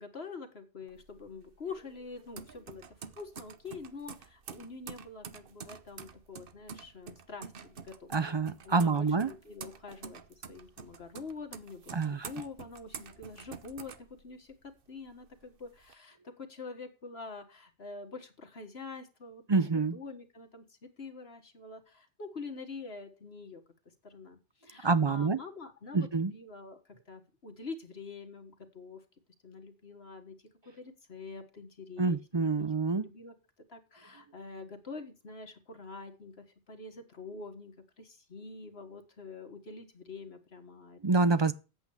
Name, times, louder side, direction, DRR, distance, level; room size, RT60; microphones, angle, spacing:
voice 1, 0.0-8.1 8.6-19.4 19.7-23.6 24.0-29.0 29.4-30.4 30.8-32.7 33.0-33.3 33.7-41.4, left 4 dB, 60° left, 1.8 m, -46 dB
sound 1, 0.9-14.7 15.1-15.9, right 6 dB, 55° right, 1.0 m, -48 dB
voice 2, 8.1-9.3 11.9-12.3 19.5-20.0 24.8-25.4 25.9-26.3 32.0-33.1 41.0-41.5, right 4 dB, 35° right, 0.4 m, -27 dB
8.5 x 8.1 x 7.1 m
omnidirectional pair, 1.2 m